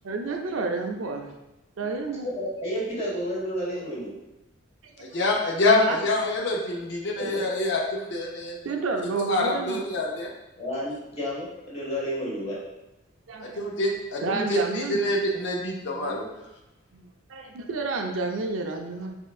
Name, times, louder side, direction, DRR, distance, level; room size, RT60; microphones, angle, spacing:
voice 1, 0.0-1.4 1.8-2.3 4.8-5.1 5.7-6.0 8.6-9.8 13.3-13.6 14.2-15.1 16.9-19.2, right 3 dB, 90° right, 3 dB, 0.5 m, -30 dB
voice 2, 2.2-4.1 7.2-7.4 10.6-12.6 15.9-16.2, equal, 30° left, -6 dB, 1.4 m, -31 dB
voice 3, 5.0-8.6 9.2-10.3 13.4-16.1, left 2 dB, 60° left, 0 dB, 0.6 m, -26 dB
4.4 x 3.6 x 2.4 m, 0.96 s
head